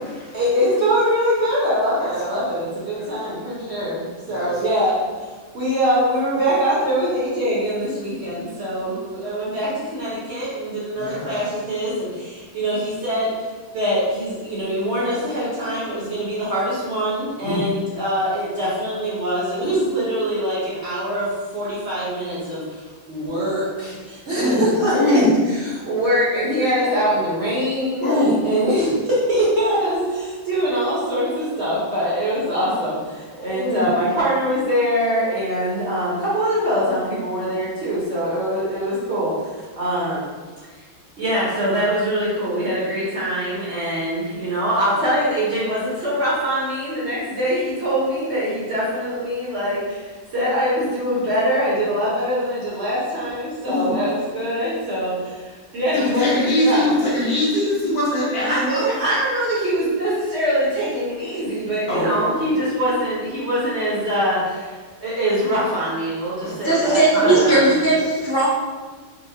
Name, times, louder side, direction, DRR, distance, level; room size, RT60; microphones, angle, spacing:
voice 1, 0.3-4.9 5.5-13.3 13.7-25.2 25.6-28.1 28.4-40.3 41.2-55.4 55.7-56.9 58.5-67.7, equal, 55° right, -8 dB, 1.0 m, -23 dB
voice 2, 2.0-2.4 2.9-3.1 4.3-4.5 10.9-11.3 17.4-17.7 24.3-24.6 24.9-25.3 28.0-28.4 33.3-33.9 53.6-54.0 55.9-58.9 61.9-62.3 66.5-66.6 67.3-67.6, left 1 dB, 85° left, -7 dB, 1.5 m, -22 dB
voice 3, 66.6-68.5, right 2 dB, 45° left, -6 dB, 0.7 m, -17 dB
4.0 x 2.1 x 2.7 m, 1.4 s
omnidirectional pair, 1.5 m